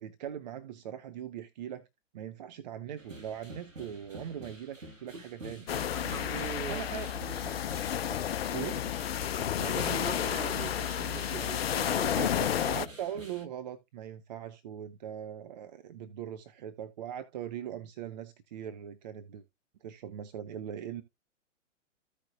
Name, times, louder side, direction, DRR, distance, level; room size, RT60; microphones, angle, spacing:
voice 1, 0.0-1.9 2.1-5.6 6.7-7.1 8.5-8.9 12.2-19.4 19.8-21.0, right 9 dB, 35° right, 0.6 m, -40 dB
sound 1, 3.0-13.4, right 1 dB, 80° right, 1.5 m, -47 dB
sound 2, 5.7-12.9, left 10 dB, 55° left, 0.4 m, -31 dB
voice 2, 5.9-6.8 9.6-12.3, right 4 dB, 60° right, 3.2 m, -40 dB
15.0 x 5.0 x 2.5 m
figure-of-eight pair, 115°, 38 cm